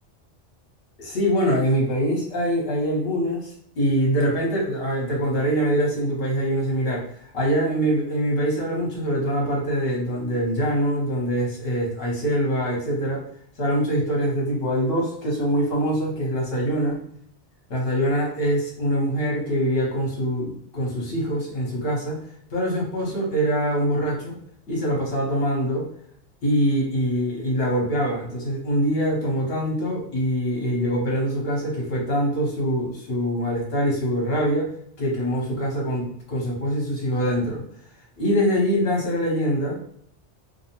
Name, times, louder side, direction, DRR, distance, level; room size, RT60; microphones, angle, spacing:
voice 1, 1.0-13.2 13.6-17.0 17.7-22.2 22.5-24.4 24.7-25.9 26.4-34.7 35.0-37.6 38.2-39.8, equal, 60° left, -2 dB, 1.1 m, -24 dB
2.7 x 2.0 x 2.8 m, 0.67 s
omnidirectional pair, 1.2 m